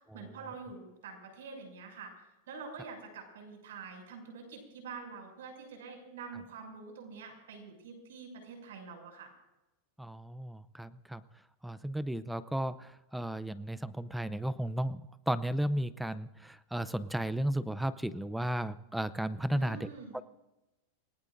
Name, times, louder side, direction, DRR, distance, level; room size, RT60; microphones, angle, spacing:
voice 1, 0.1-2.1 2.5-9.3 19.5-20.1, right 5 dB, 85° right, 3 dB, 6.2 m, -46 dB
voice 2, 10.0-11.2 11.6-15.0 15.3-19.9 20.1-20.2, right 1 dB, 5° right, 15 dB, 0.5 m, -34 dB
28.5 x 18.5 x 2.6 m, 0.99 s
supercardioid pair, 155°, 0 cm